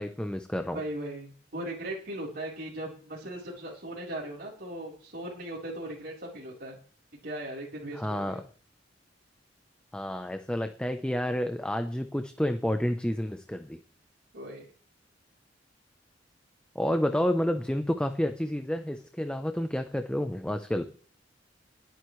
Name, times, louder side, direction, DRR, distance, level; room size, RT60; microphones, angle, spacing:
voice 1, 0.0-0.8 7.9-8.4 9.9-13.8 16.7-20.9, equal, 5° left, 7 dB, 0.8 m, -30 dB
voice 2, 0.7-6.8 7.2-8.4 14.3-14.7, right 1 dB, 55° right, -5 dB, 4.1 m, -38 dB
21.0 x 9.5 x 3.3 m, 0.43 s
head